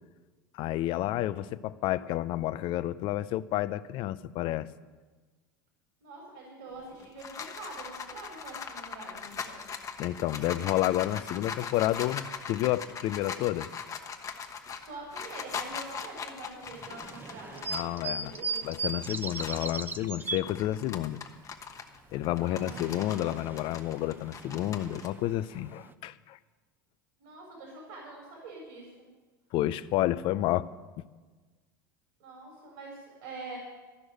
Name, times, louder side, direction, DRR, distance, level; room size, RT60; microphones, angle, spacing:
voice 1, 0.5-4.7 10.0-13.7 17.7-18.3 18.6-21.2 22.1-26.4 29.5-30.7 31.0-31.1, left 14 dB, 50° left, 16 dB, 0.6 m, -30 dB
voice 2, 6.0-9.7 14.8-18.7 22.4-22.9 27.2-29.1 32.2-33.6, right 3 dB, 70° right, -2 dB, 4.0 m, -45 dB
sound 1, 6.8-19.7 20.2-25.1, left 6 dB, 30° left, 1.3 m, -41 dB
sound 2, 16.6-20.4 22.2-25.9, right 4 dB, 20° right, 0.8 m, -38 dB
14.0 x 6.3 x 10.0 m, 1.3 s
hypercardioid pair, 80°, 11 cm